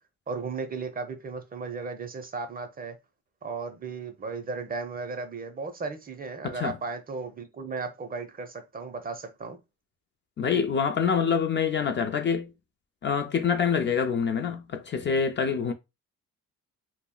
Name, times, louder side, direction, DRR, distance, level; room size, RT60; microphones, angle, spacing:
voice 1, 0.3-3.0 3.4-9.6, right 4 dB, 30° right, 0.5 m, -35 dB
voice 2, 6.4-6.8 10.4-12.5 13.0-15.7, left 6 dB, 40° left, 0.4 m, -26 dB
2.2 x 2.1 x 3.7 m
cardioid pair, 90°, 30 cm